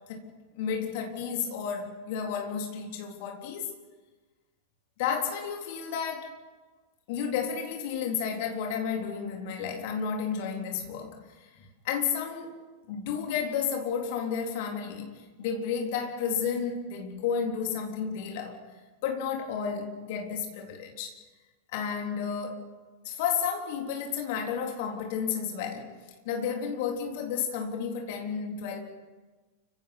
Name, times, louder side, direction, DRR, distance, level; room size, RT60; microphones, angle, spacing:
voice 1, 0.6-3.7 5.0-6.4 7.1-11.3 11.8-12.6 12.9-18.6 19.0-21.2 21.7-22.6 23.0-25.9 26.3-28.8, left 7 dB, 50° left, 3.7 m, -32 dB
29.0 x 16.5 x 6.1 m
figure-of-eight pair, 90°, 0 cm